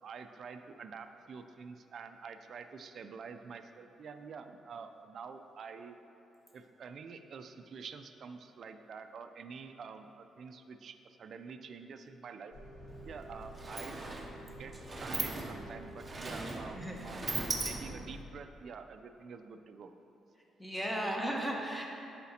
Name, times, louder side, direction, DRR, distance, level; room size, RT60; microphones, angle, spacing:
voice 1, 0.0-6.0 6.5-12.5 13.1-14.1 14.4-14.7 15.0-19.9, right 5 dB, 55° right, 7 dB, 0.3 m, -47 dB
sound 1, 12.5-18.1, right 1 dB, 60° left, 1.2 m, -50 dB
Sliding door, 12.9-13.0 13.3-18.2, right 2 dB, 25° right, 0.6 m, -39 dB
voice 2, 16.7-17.1 20.6-21.9, equal, 5° left, -1 dB, 0.9 m, -35 dB
8.2 x 5.7 x 2.8 m, 2.8 s
cardioid pair, 90°, 0 cm